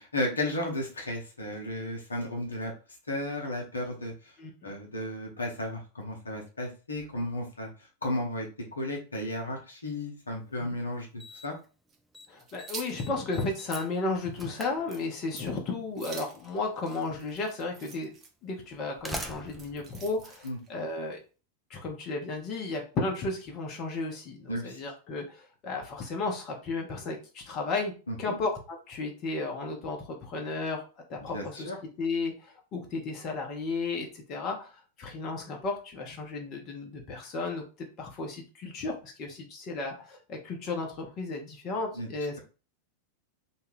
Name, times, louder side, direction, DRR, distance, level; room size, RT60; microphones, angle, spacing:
voice 1, 0.0-2.7 3.1-4.3 4.6-7.7 8.0-11.1 11.4-11.5 20.4-20.6 24.5-24.8 28.1-28.4 31.3-31.8 42.0-42.1, left 1 dB, 75° left, 0 dB, 0.7 m, -34 dB
voice 2, 4.4-4.7 10.6-10.7 12.3-18.1 18.4-21.2 21.7-31.7 32.0-42.4, left 3 dB, 35° left, 2 dB, 0.7 m, -34 dB
Slam, 10.4-10.5 11.2-11.7 11.9-12.3 12.6-15.5 16.6-16.7 17.6-17.7 18.6-21.0, right 1 dB, ahead, 0.4 m, -42 dB
sound 1, 11.9-13.0 13.4-13.5 13.9-14.0 14.3-14.6 14.9-15.0 15.3-15.6 15.9-18.3 19.1-20.7, right 5 dB, 30° right, 0.8 m, -46 dB
2.8 x 2.3 x 3.1 m, 0.34 s
figure-of-eight pair, 90°, 0 cm